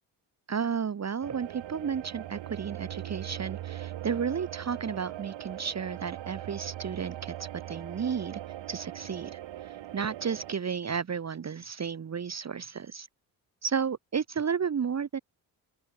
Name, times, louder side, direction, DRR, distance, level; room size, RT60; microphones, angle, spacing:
voice 1, 0.5-8.4 8.7-13.1 13.6-15.2, right 6 dB, 35° right, 1.2 m, -33 dB
sound 1, 1.2-10.6, right 13 dB, 65° right, 1.5 m, -40 dB
open air
supercardioid pair, 65°, 48 cm